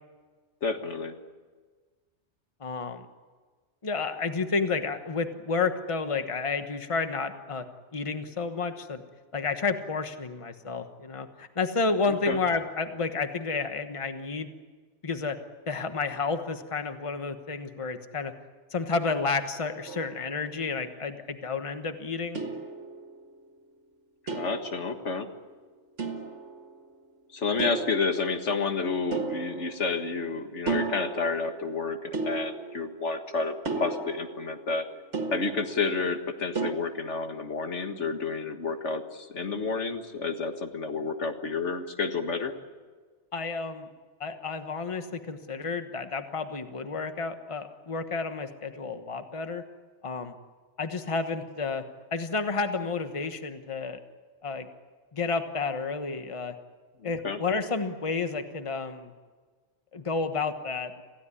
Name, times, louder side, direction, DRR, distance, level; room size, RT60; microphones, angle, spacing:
voice 1, 0.6-1.2 12.1-12.4 24.3-25.3 27.3-34.9 35.3-42.5 57.0-57.4, left 4 dB, 80° left, 6 dB, 1.9 m, -30 dB
voice 2, 2.6-3.0 3.8-7.6 7.9-9.0 9.3-14.5 15.0-15.4 15.7-18.3 18.7-22.4 43.3-43.9 44.2-49.6 50.0-50.3 50.8-51.8 52.1-54.0 54.4-54.7 55.1-56.5 57.0-59.1 59.9-61.0, left 4 dB, 30° left, 8 dB, 1.3 m, -31 dB
sound 1, 19.9-20.9 22.3-23.4 24.3-25.5 26.0-26.9 27.6-28.6 29.1-30.3 30.7-31.7 32.1-33.1 33.6-36.0 36.5-36.7, right 4 dB, 80° right, 2.1 m, -35 dB
27.5 x 16.0 x 9.9 m, 1.5 s
omnidirectional pair, 1.2 m